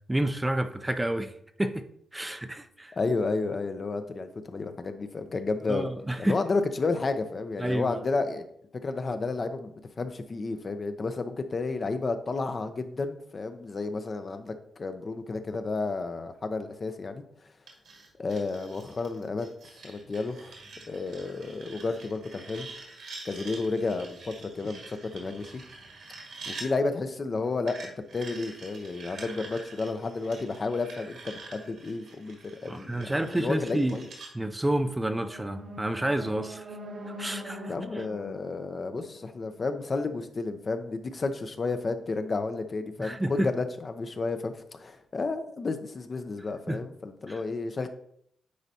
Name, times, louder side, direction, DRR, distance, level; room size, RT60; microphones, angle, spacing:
voice 1, 0.1-1.3 1.6-1.8 2.1-3.0 5.7-6.4 7.6-8.0 32.7-34.0 34.3-36.7 37.2-38.0 43.0-43.5 46.7-46.8 47.3-47.4, right 1 dB, 15° right, 8 dB, 0.5 m, -29 dB
voice 2, 2.9-5.9 6.2-8.4 8.8-9.7 10.0-17.2 18.2-19.5 19.8-20.5 20.9-22.7 23.2-25.6 26.5-34.1 37.7-47.9, left 3 dB, 40° left, 8 dB, 0.6 m, -31 dB
sound 1, 17.7-26.7 27.7-34.3, right 3 dB, 75° right, 1.8 m, -46 dB
sound 2, 34.8-39.9, equal, 60° right, 1.0 m, -43 dB
9.4 x 4.0 x 2.8 m, 0.70 s
cardioid pair, 75°, 0 cm